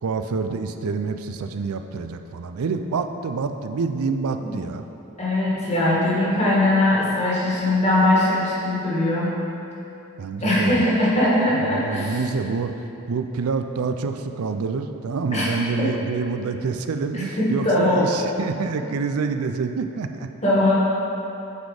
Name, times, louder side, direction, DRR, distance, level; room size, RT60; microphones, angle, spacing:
voice 1, 0.0-4.8 10.2-10.9 11.5-12.7 13.1-20.3, right 4 dB, 90° right, 7 dB, 0.4 m, -27 dB
voice 2, 5.2-9.3 10.4-12.2 15.3-15.5 15.8-15.9 17.1-18.1 20.4-20.7, left 1 dB, 30° left, -7 dB, 1.6 m, -21 dB
8.1 x 4.2 x 4.8 m, 2.9 s
head